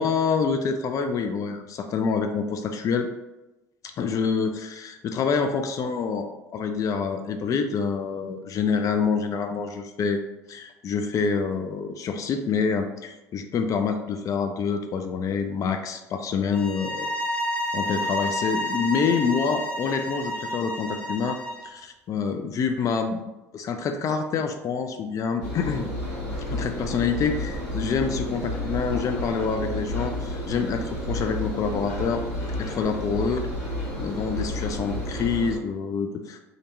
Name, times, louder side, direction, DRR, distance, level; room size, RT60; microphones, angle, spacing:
voice 1, 0.0-3.1 4.0-10.2 10.5-17.1 17.7-21.4 21.6-25.9 26.5-32.2 32.6-33.4 34.0-36.4, left 5 dB, 40° left, 6 dB, 0.4 m, -27 dB
sound 1, 16.5-21.7, equal, 15° left, 0.7 m, -30 dB
Engine, 25.4-35.6, left 1 dB, 85° left, 1.0 m, -31 dB
2.5 x 2.2 x 2.9 m, 1.0 s
hypercardioid pair, 65°, 8 cm